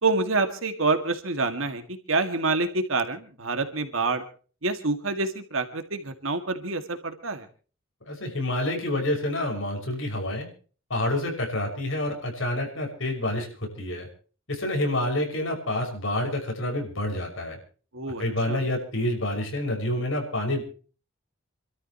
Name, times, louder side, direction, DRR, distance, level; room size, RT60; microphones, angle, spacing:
voice 1, 0.0-4.2 4.6-7.5 17.9-18.6, right 3 dB, 80° right, 7 dB, 2.1 m, -27 dB
voice 2, 8.1-10.5 10.9-14.1 14.5-17.6 18.2-20.6, left 1 dB, 70° left, 2 dB, 6.0 m, -28 dB
29.0 x 13.0 x 3.0 m, 0.39 s
head